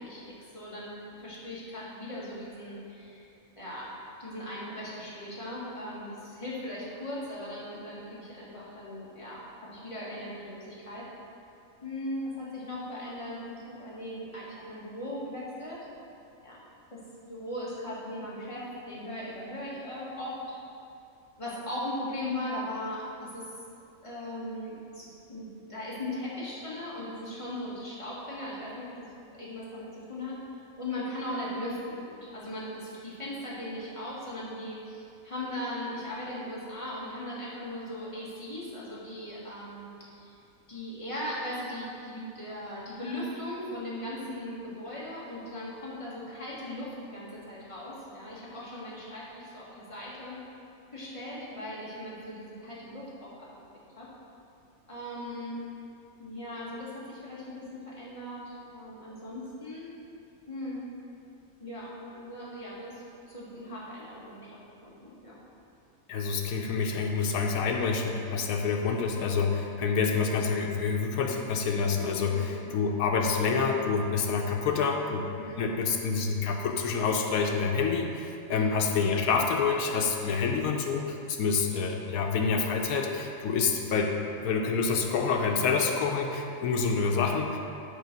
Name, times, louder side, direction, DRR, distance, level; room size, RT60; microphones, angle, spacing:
voice 1, 0.0-3.3 3.5-3.9 4.2-11.1 11.8-15.8 16.4-16.6 16.9-17.0 17.3-20.5 21.4-23.5 24.0-29.1 29.4-30.4 30.8-40.3 40.7-50.4 50.9-53.5 54.0-54.1 54.9-55.6 56.2-59.9 60.5-60.8 61.6-64.6 64.8-65.3 72.3-72.6 75.3-75.7 78.5-78.8, left 1 dB, 20° left, -8 dB, 1.9 m, -38 dB
voice 2, 66.1-75.3 75.5-84.1 84.4-87.6, left 5 dB, 85° left, 1 dB, 1.1 m, -27 dB
8.1 x 4.6 x 5.9 m, 2.7 s
omnidirectional pair, 1.5 m